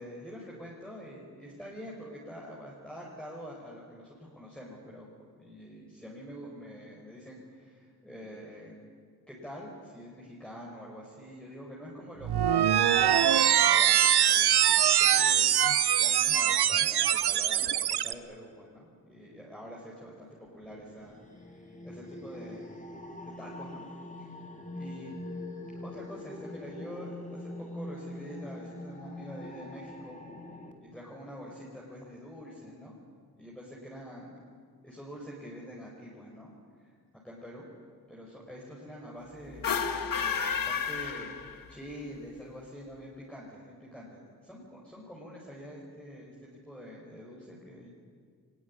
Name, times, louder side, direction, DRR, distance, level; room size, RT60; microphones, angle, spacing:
voice 1, 0.0-8.8 9.3-15.6 16.0-22.7 23.2-23.9 24.2-24.3 24.7-25.2 25.8-30.2 30.8-32.9 33.4-34.3 34.8-36.5 36.8-36.9 37.2-37.7 38.1-41.4 41.7-47.9, equal, 5° left, -4 dB, 4.9 m, -46 dB
sound 1, 12.2-18.1, right 10 dB, 90° right, 0.8 m, -23 dB
sound 2, 20.5-30.7, left 1 dB, 20° left, 2.8 m, -43 dB
sound 3, 39.5-41.9, left 6 dB, 60° left, 1.6 m, -31 dB
23.0 x 20.0 x 9.7 m, 2.1 s
wide cardioid pair, 100°, 38 cm